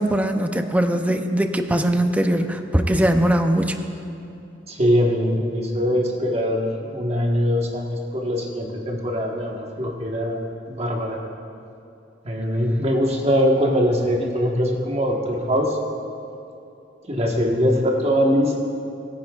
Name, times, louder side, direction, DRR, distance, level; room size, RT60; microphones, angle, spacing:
voice 1, 0.0-3.8, right 1 dB, 10° right, 6 dB, 0.5 m, -20 dB
voice 2, 4.7-11.2 12.2-15.8 17.1-18.7, equal, 35° right, 0 dB, 1.3 m, -22 dB
21.0 x 9.8 x 2.4 m, 2.7 s
head